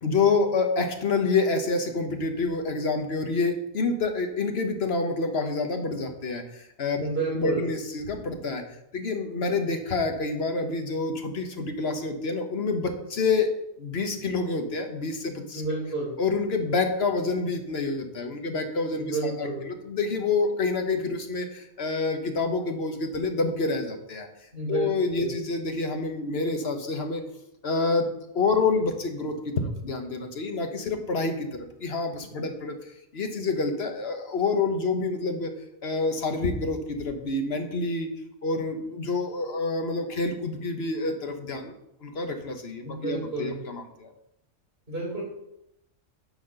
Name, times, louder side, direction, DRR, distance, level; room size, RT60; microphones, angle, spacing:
voice 1, 0.0-7.1 7.3-8.6 8.9-13.5 13.8-15.6 16.2-24.3 24.7-27.2 27.6-28.1 28.3-32.8 33.1-35.5 35.8-38.1 38.4-41.7 42.0-44.1, left 3 dB, 55° left, 5 dB, 1.3 m, -27 dB
voice 2, 7.0-7.7 15.5-16.1 18.9-19.6 24.5-25.3 32.3-32.4 42.8-43.6 44.9-45.2, right 3 dB, 50° right, -3 dB, 4.0 m, -30 dB
9.5 x 4.3 x 6.5 m, 0.82 s
omnidirectional pair, 1.3 m